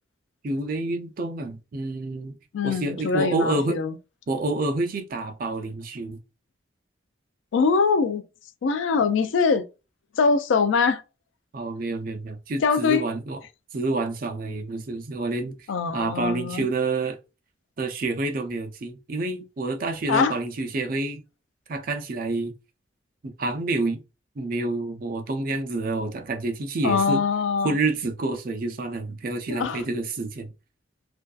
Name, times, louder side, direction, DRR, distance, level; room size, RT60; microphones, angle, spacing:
voice 1, 0.4-2.4 2.6-3.8 4.3-6.2 11.5-13.4 13.7-15.6 15.9-17.2 17.8-21.2 21.7-22.5 23.2-24.0 24.4-27.2 27.6-30.5, right 2 dB, 50° right, 0.4 m, -28 dB
voice 2, 2.5-4.0 7.5-8.3 8.6-9.6 10.2-11.0 12.6-13.0 15.7-16.7 20.1-20.4 26.8-27.8 29.5-29.8, left 5 dB, 85° left, 0.3 m, -23 dB
2.5 x 2.3 x 2.3 m
head